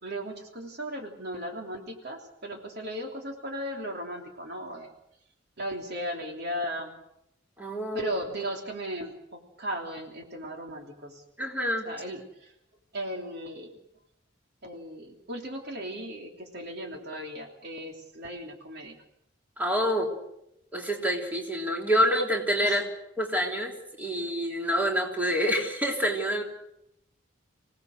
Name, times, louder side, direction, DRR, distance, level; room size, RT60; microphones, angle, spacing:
voice 1, 0.0-4.9 5.6-6.9 7.9-11.2 11.8-12.5 12.9-13.8 14.6-19.0 22.6-22.8, equal, 60° right, 2 dB, 3.1 m, -36 dB
voice 2, 7.6-8.1 11.4-11.9 19.6-20.1 20.7-22.8 23.2-26.4, equal, 10° right, 0 dB, 3.3 m, -27 dB
26.0 x 17.5 x 6.5 m, 0.79 s
head